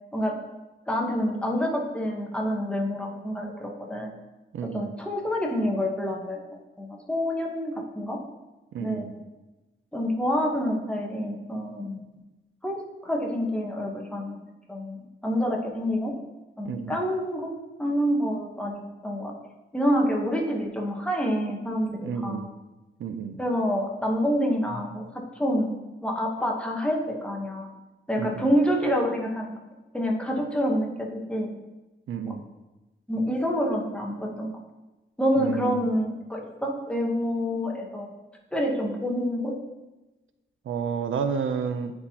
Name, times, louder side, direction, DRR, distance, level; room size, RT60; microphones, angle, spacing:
voice 1, 0.9-4.1 4.7-6.4 6.8-8.2 8.8-9.1 9.9-12.0 12.6-14.4 14.7-15.0 15.2-16.2 16.6-17.5 17.8-19.3 19.7-22.5 23.4-25.1 25.4-25.7 26.0-27.7 28.1-29.5 29.9-31.5 32.2-32.3 33.1-34.5 35.2-38.1 38.5-39.6, equal, 5° left, -1 dB, 0.9 m, -27 dB
voice 2, 4.5-4.9 8.7-9.1 16.6-17.0 22.0-22.5 23.0-23.4 28.2-28.5 32.1-32.4 35.4-35.9 40.7-41.9, right 6 dB, 75° right, 8 dB, 0.5 m, -31 dB
9.4 x 4.3 x 2.8 m, 1.1 s
wide cardioid pair, 160°, 21 cm